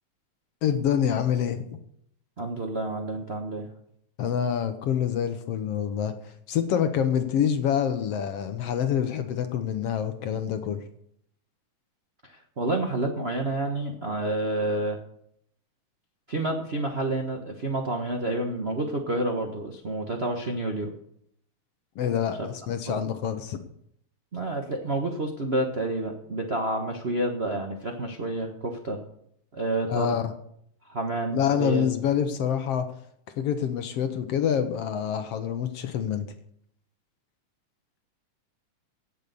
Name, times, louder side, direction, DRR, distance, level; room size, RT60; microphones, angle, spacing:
voice 1, 0.6-1.6 4.2-6.1 6.5-10.8 22.0-23.6 29.9-30.3 31.3-32.9 33.4-36.3, left 8 dB, 70° left, 8 dB, 1.7 m, -26 dB
voice 2, 2.4-3.7 12.2-15.0 16.3-20.9 22.4-22.5 22.9-23.0 24.3-29.0 29.5-30.2 30.9-31.9, right 2 dB, 60° right, 3 dB, 0.6 m, -29 dB
17.0 x 6.9 x 6.8 m, 0.71 s
omnidirectional pair, 3.4 m